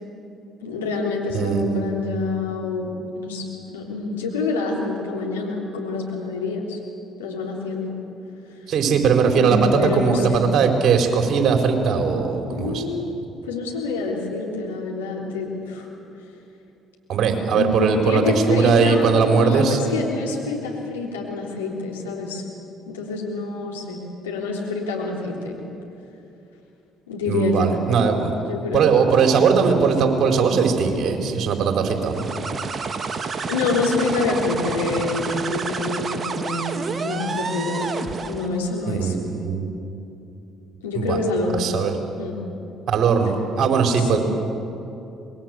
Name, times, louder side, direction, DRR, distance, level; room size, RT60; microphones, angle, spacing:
voice 1, 0.6-3.5 3.7-6.8 7.2-8.0 9.3-10.4 12.5-13.2 13.5-15.9 17.5-22.4 22.9-25.6 27.1-27.8 28.4-28.9 33.5-37.9 38.2-39.2 40.8-41.7 42.2-42.4 43.9-44.2, left 3 dB, 90° left, -2 dB, 3.5 m, -26 dB
voice 2, 1.3-1.8 8.7-12.8 17.1-19.8 27.3-28.3 28.7-32.3 38.9-39.7 40.9-41.2 41.6-41.9 42.9-44.2, right 5 dB, 55° right, 4 dB, 4.5 m, -19 dB
sound 1, 32.0-38.6, right 4 dB, 40° right, 1.8 m, -29 dB
26.0 x 21.5 x 8.0 m, 2.8 s
hypercardioid pair, 55°, 0 cm